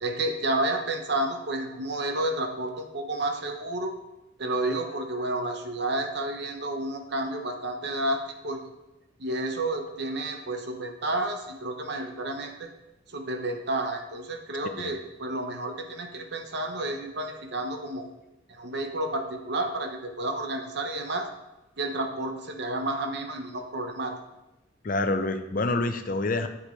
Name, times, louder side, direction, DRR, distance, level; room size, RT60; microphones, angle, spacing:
voice 1, 0.0-3.9 4.4-8.6 9.2-12.7 13.1-18.1 18.5-21.3 21.8-24.2, right 2 dB, 55° right, 4 dB, 0.9 m, -31 dB
voice 2, 24.8-26.5, left 2 dB, 45° left, 8 dB, 0.6 m, -27 dB
8.4 x 8.3 x 3.2 m, 0.97 s
head